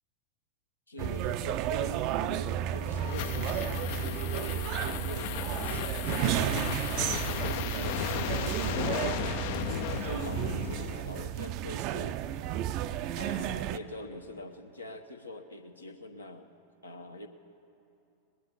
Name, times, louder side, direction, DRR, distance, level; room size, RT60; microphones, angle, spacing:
voice 1, 0.9-6.7 7.3-9.4 9.9-12.2 13.2-16.5 16.8-17.3, left 2 dB, 80° left, 5 dB, 0.9 m, -44 dB
sound 1, 1.0-13.8, right 11 dB, 40° right, 0.4 m, -32 dB
sound 2, 2.5-11.3, left 13 dB, 50° left, 0.3 m, -36 dB
20.5 x 8.9 x 5.4 m, 2.8 s
figure-of-eight pair, 90°, 0 cm